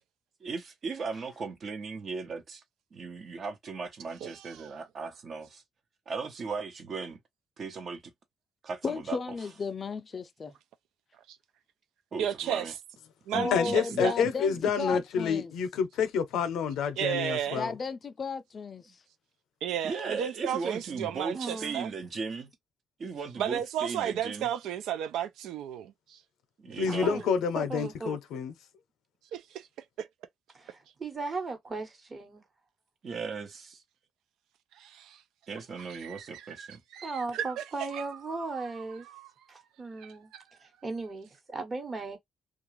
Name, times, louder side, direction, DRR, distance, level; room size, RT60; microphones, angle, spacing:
voice 1, 0.4-2.6 2.9-5.6 6.1-7.2 7.6-8.0 8.6-9.2 12.1-12.7 13.3-14.6 19.8-22.5 23.0-24.5 26.6-27.2 33.0-33.8 35.5-36.8, right 4 dB, 50° right, 0.9 m, -37 dB
voice 2, 4.2-4.7 11.3-11.4 12.2-12.7 13.3-14.1 17.0-17.6 19.6-21.9 23.4-26.2 29.3-29.7 30.0-30.1 34.8-35.2 35.9-37.6 37.9-38.1 38.4-38.5 38.7-39.3 40.0-40.4, right 10 dB, 85° right, 0.4 m, -34 dB
voice 3, 8.8-10.5 13.3-15.5 17.5-19.0, left 4 dB, 40° left, 0.4 m, -34 dB
voice 4, 13.5-17.7 26.8-28.5, left 6 dB, 85° left, 0.6 m, -28 dB
voice 5, 21.3-21.8 26.8-28.2 30.5-32.4 37.0-39.1 39.5-40.3 40.6-42.2, right 3 dB, 35° right, 1.1 m, -37 dB
2.4 x 2.3 x 3.0 m
cardioid pair, 90°, 0 cm